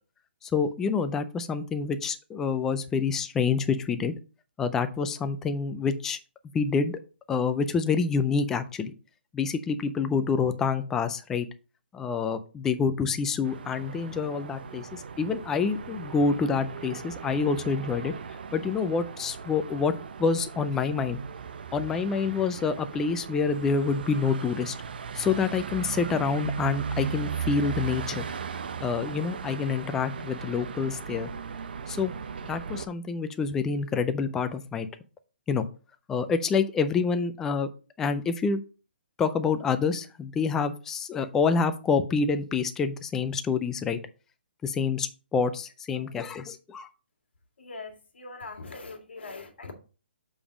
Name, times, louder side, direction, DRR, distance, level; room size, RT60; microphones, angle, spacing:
voice 1, 0.4-4.1 4.6-6.2 6.5-7.0 7.3-8.9 9.3-11.5 11.9-18.1 18.5-19.9 20.2-21.2 21.7-24.7 25.1-28.3 28.8-31.3 31.9-32.1 32.5-34.9 35.5-35.7 36.1-37.7 38.0-38.6 39.2-44.0 44.6-46.9, left 5 dB, 5° left, 0.3 m, -27 dB
sound 1, 13.4-32.9, right 6 dB, 60° right, 0.6 m, -37 dB
voice 2, 47.6-49.7, left 3 dB, 80° left, 1.8 m, -42 dB
7.0 x 3.5 x 4.9 m
hypercardioid pair, 165°, 6 cm